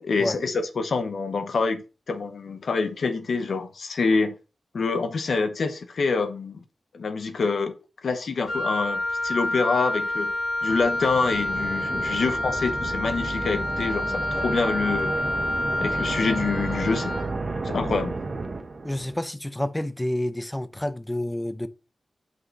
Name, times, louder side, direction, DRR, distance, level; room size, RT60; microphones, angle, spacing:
voice 1, 0.0-4.4 4.7-6.6 6.9-7.7 8.0-10.3 10.6-15.2 15.8-17.2 17.6-18.2, left 4 dB, 85° left, 0.9 m, -26 dB
Wind instrument woodwind instrument, 8.5-17.3, left 1 dB, 50° left, 3.3 m, -28 dB
sound 1, 10.7-19.2, right 3 dB, 50° right, 0.9 m, -32 dB
voice 2, 18.8-21.7, left 1 dB, 10° left, 0.5 m, -29 dB
9.5 x 5.6 x 2.6 m
wide cardioid pair, 100°, 0 cm